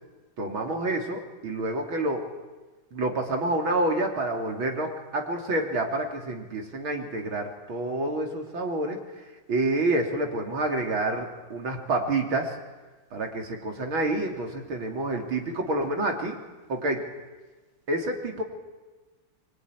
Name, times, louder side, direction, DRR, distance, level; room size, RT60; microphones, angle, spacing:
voice 1, 0.4-2.2 2.9-9.0 9.5-12.5 13.1-16.4 16.7-17.0 17.9-18.4, right 2 dB, 65° right, 3 dB, 3.9 m, -28 dB
24.0 x 23.5 x 9.9 m, 1.2 s
omnidirectional pair, 2.4 m